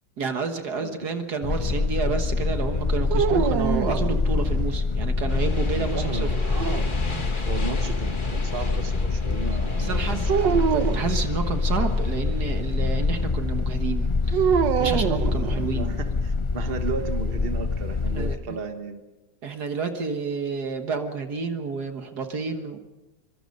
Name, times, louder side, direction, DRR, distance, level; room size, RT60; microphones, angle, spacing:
voice 1, 0.2-6.3 7.4-7.5 9.8-15.9 18.1-18.6 19.4-22.8, right 5 dB, 65° right, 6 dB, 2.0 m, -30 dB
sound 1, 1.4-18.4, left 4 dB, 50° left, 0.3 m, -25 dB
sound 2, 3.1-4.7 6.3-7.4 10.3-11.1 14.3-16.0, right 8 dB, 80° right, 1.6 m, -25 dB
sound 3, 5.3-13.3, left 3 dB, 30° left, 1.8 m, -39 dB
voice 2, 5.7-6.3 7.4-10.9 15.7-19.0, right 4 dB, 35° right, 7 dB, 1.5 m, -34 dB
25.0 x 23.5 x 5.4 m, 1.1 s
omnidirectional pair, 1.9 m